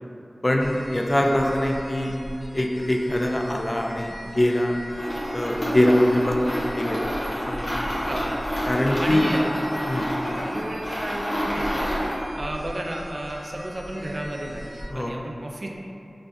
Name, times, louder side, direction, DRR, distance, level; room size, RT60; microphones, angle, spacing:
voice 1, 0.4-2.1 2.5-4.8 5.3-7.1 7.5-7.9 8.7-9.3 9.9-10.1 14.9-15.2, left 1 dB, 35° left, 1 dB, 0.3 m, -23 dB
sound 1, 0.6-14.8, equal, ahead, 0.7 m, -39 dB
sound 2, 4.9-12.2, equal, 65° left, 1.0 m, -29 dB
voice 2, 8.1-8.4 9.0-9.5 10.3-11.9 12.3-15.7, right 1 dB, 60° right, 0 dB, 0.4 m, -32 dB
4.5 x 2.5 x 2.5 m, 2.8 s
wide cardioid pair, 50°, 0 cm